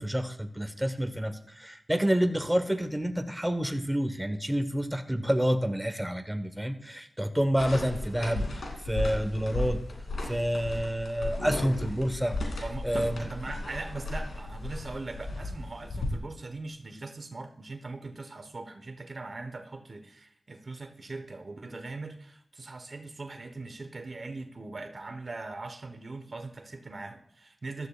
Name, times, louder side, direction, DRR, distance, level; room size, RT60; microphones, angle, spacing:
voice 1, 0.0-9.8 10.3-12.4 12.8-13.2, equal, 5° right, 6 dB, 1.2 m, -28 dB
sound 1, 7.6-16.2, left 2 dB, 85° left, 2.7 m, -35 dB
voice 2, 12.6-27.9, right 3 dB, 55° right, 7 dB, 1.1 m, -40 dB
15.5 x 12.0 x 2.4 m, 0.74 s
cardioid pair, 45°, 0 cm